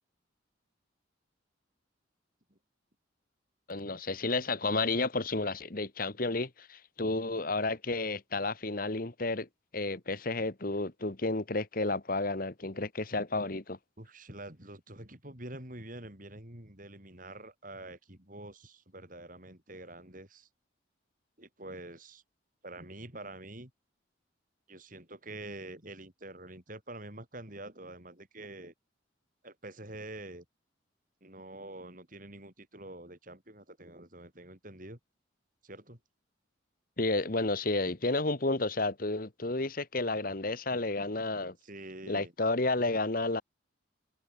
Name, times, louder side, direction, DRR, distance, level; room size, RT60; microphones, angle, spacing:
voice 1, 3.7-9.5 9.7-13.8 37.0-41.6 42.1-43.4, left 2 dB, 45° left, 1.5 m, -31 dB
voice 2, 14.0-20.5 21.4-22.2 22.6-23.7 24.7-28.7 29.4-30.5 31.2-35.0 35.6-36.0 41.6-42.3, right 1 dB, 45° right, 5.4 m, -46 dB
head